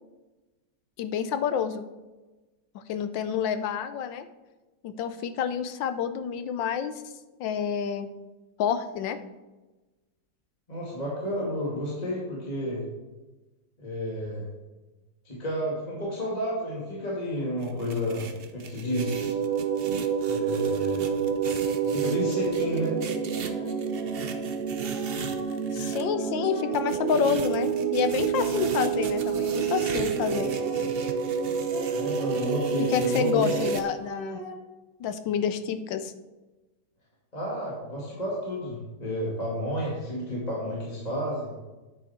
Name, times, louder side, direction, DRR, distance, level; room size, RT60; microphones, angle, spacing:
voice 1, 1.0-1.8 2.7-4.3 4.8-7.0 7.4-8.1 8.6-9.2 25.7-30.5 32.8-34.4 35.0-36.1, left 7 dB, 75° left, 10 dB, 1.4 m, -28 dB
voice 2, 10.7-12.8 13.8-14.5 15.2-18.3 18.5-19.3 20.2-21.2 21.8-22.9 31.9-33.5 37.3-41.5, equal, 20° left, -5 dB, 2.4 m, -31 dB
sound 1, 17.6-26.0 26.7-33.8, right 6 dB, 90° right, 0.5 m, -40 dB
sound 2, 18.8-33.8, right 6 dB, 70° right, 1.5 m, -28 dB
sound 3, 22.6-30.8 31.7-34.5, right 2 dB, 55° right, 2.4 m, -43 dB
9.4 x 9.1 x 4.3 m, 1.1 s
omnidirectional pair, 2.1 m